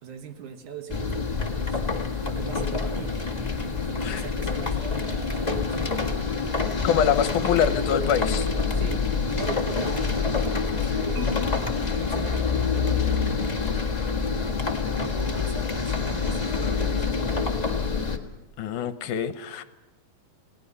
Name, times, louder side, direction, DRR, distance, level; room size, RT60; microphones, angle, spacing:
voice 1, 0.0-3.3 3.8-6.2 8.7-11.4 12.0-12.8 14.3-14.7 15.0-17.6, right 7 dB, 65° right, 2.5 m, -40 dB
sound 1, 0.9-18.2, left 5 dB, 40° left, 0.5 m, -26 dB
sound 2, 4.7-6.4 6.6-7.5 7.8-9.2 9.5-11.1 11.5-13.0, right 3 dB, 30° right, 2.4 m, -44 dB
voice 2, 6.8-8.7 18.6-19.6, left 8 dB, 70° left, 2.2 m, -25 dB
Marimba xylophone, 11.1-13.3, left 4 dB, 5° left, 1.3 m, -40 dB
28.5 x 18.0 x 5.5 m
omnidirectional pair, 4.1 m